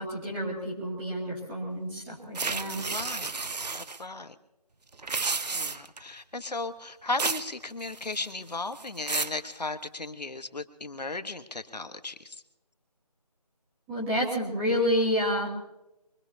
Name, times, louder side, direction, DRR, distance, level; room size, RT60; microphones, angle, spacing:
voice 1, 0.0-2.8 13.9-15.5, equal, 10° right, -6 dB, 2.4 m, -29 dB
sound 1, 2.4-4.0 4.9-6.0 7.2-7.5 7.8-8.3 8.8-9.4, right 4 dB, 90° right, 0.7 m, -31 dB
voice 2, 2.9-3.3 3.7-4.3 5.5-12.4, left 3 dB, 85° left, 10 dB, 1.3 m, -36 dB
23.5 x 21.5 x 2.8 m, 0.93 s
figure-of-eight pair, 165°, 21 cm